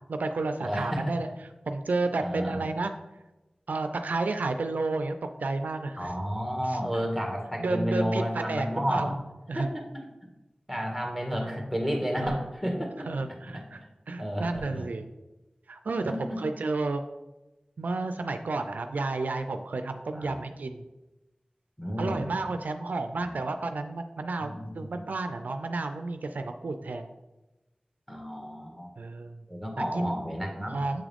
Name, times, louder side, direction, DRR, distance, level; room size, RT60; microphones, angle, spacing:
voice 1, 0.1-1.3 1.7-2.9 3.7-6.1 6.7-6.8 7.6-9.1 9.5-9.7 11.3-11.5 12.2-12.4 13.1-13.8 14.1-15.1 15.7-17.0 17.8-20.8 22.0-27.1 29.0-29.5 29.9-30.2 30.7-31.0, right 3 dB, 90° right, 7 dB, 0.3 m, -31 dB
voice 2, 0.6-1.1 2.2-2.6 6.0-9.1 9.5-9.7 9.9-10.0 10.7-13.1 14.2-14.8 16.1-16.4 20.1-20.3 21.8-22.3 23.1-23.3 24.4-25.0 28.1-28.9 29.5-30.8, equal, 5° left, 0 dB, 1.6 m, -31 dB
7.5 x 3.6 x 3.4 m, 1.0 s
wide cardioid pair, 40°, 3 cm